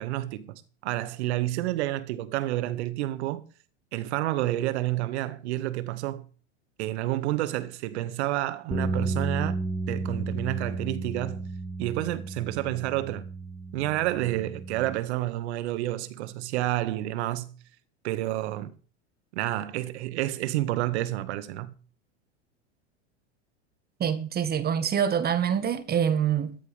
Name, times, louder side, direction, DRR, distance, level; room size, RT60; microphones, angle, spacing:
voice 1, 0.0-3.4 3.9-6.2 6.8-9.6 9.9-11.5 11.8-13.2 13.7-17.5 18.0-18.7 19.3-21.7, right 15 dB, 65° right, 1.9 m, -29 dB
sound 1, 8.7-15.0, right 3 dB, 5° right, 1.8 m, -33 dB
voice 2, 24.0-26.6, right 8 dB, 25° right, 1.7 m, -25 dB
15.0 x 14.5 x 3.6 m
hypercardioid pair, 115°, 35 cm